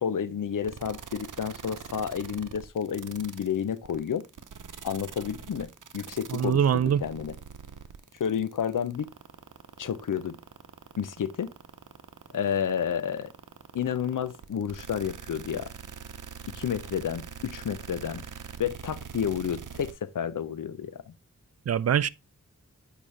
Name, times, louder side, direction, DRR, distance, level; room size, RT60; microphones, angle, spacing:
voice 1, 0.0-4.3 4.8-7.3 8.2-9.1 9.8-10.4 11.0-11.5 12.3-13.3 13.7-15.7 16.5-18.2 18.6-21.1, left 8 dB, 90° left, 0.6 m, -30 dB
sound 1, 0.6-19.9, right 6 dB, 75° right, 0.8 m, -43 dB
voice 2, 6.3-7.0 21.7-22.1, right 9 dB, 55° right, 0.4 m, -23 dB
8.6 x 5.1 x 3.1 m
wide cardioid pair, 65°, 31 cm